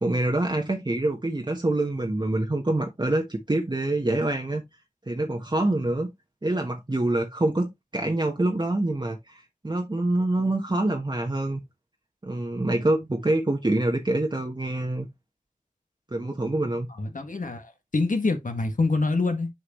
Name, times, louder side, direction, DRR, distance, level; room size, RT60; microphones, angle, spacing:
voice 1, 0.0-4.6 5.1-6.1 6.4-11.6 12.2-15.1 16.1-16.9, right 2 dB, 35° right, 1.1 m, -26 dB
voice 2, 17.0-19.5, left 3 dB, 85° left, 1.6 m, -26 dB
8.0 x 4.8 x 3.0 m
wide cardioid pair, 55°, 13 cm